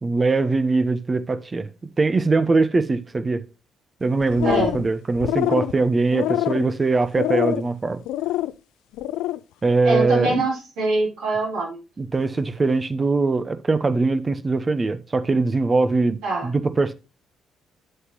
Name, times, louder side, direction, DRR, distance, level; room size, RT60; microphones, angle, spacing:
voice 1, 0.0-1.7 2.0-3.4 4.0-8.0 9.6-10.4 12.0-16.9, right 3 dB, 30° right, 0.8 m, -21 dB
sound 1, 4.2-4.9 5.2-5.7 6.1-6.7 7.1-7.6 8.1-8.5 8.9-9.4, left 15 dB, 70° left, 0.3 m, -25 dB
voice 2, 4.4-4.7 9.8-11.8 16.2-16.5, right 2 dB, 70° right, 4.5 m, -24 dB
7.9 x 7.5 x 3.0 m
hypercardioid pair, 45°, 0 cm